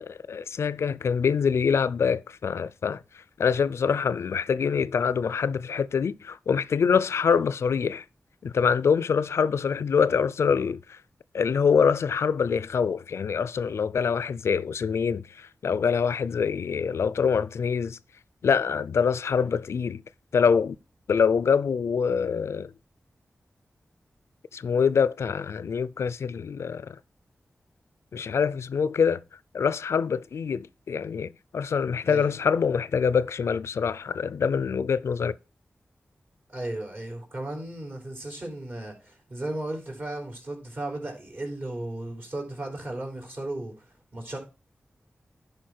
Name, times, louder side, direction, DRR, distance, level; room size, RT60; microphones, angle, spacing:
voice 1, 0.0-3.0 3.4-8.0 8.4-11.0 11.3-18.0 18.4-20.0 20.3-20.8 21.1-22.7 24.5-27.0 28.1-29.2 29.5-35.3, left 6 dB, 80° left, 0.4 m, -25 dB
voice 2, 36.5-43.8 44.1-44.4, right 1 dB, 50° right, 3.7 m, -35 dB
10.5 x 4.9 x 4.4 m
cardioid pair, 50°, 4 cm